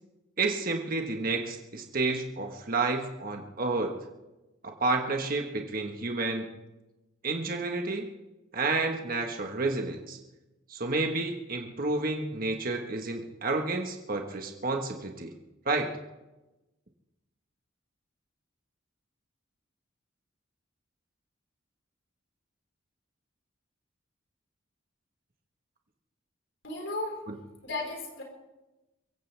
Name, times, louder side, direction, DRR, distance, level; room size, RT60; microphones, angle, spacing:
voice 1, 0.4-3.9 4.6-6.5 7.2-8.1 8.5-10.2 10.7-15.3 15.6-15.9, right 3 dB, 45° right, 3 dB, 1.4 m, -30 dB
voice 2, 26.6-27.2 27.6-28.2, left 2 dB, 70° left, 0 dB, 4.6 m, -34 dB
24.0 x 15.5 x 3.4 m, 1.0 s
head